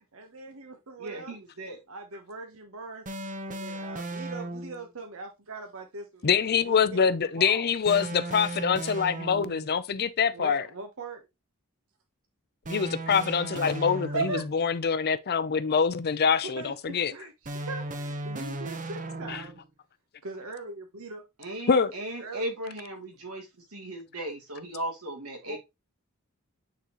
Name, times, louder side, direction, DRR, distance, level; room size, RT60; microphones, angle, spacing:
voice 1, 0.0-1.4 1.9-3.0 3.5-6.2 6.6-7.7 10.3-11.2 13.6-14.4 16.6-19.6 20.2-21.2 22.2-22.5 25.4-25.6, right 3 dB, 65° right, 1.1 m, -40 dB
voice 2, 1.0-1.8 21.4-25.6, right 1 dB, 85° right, 2.7 m, -37 dB
sound 1, 3.1-4.9 7.9-9.7 12.6-14.6 17.5-19.7, right 2 dB, 35° right, 0.9 m, -36 dB
voice 3, 6.2-10.7 12.7-17.1 19.3-19.4 21.7-21.9, left 6 dB, 45° left, 0.6 m, -25 dB
9.2 x 4.1 x 3.0 m
head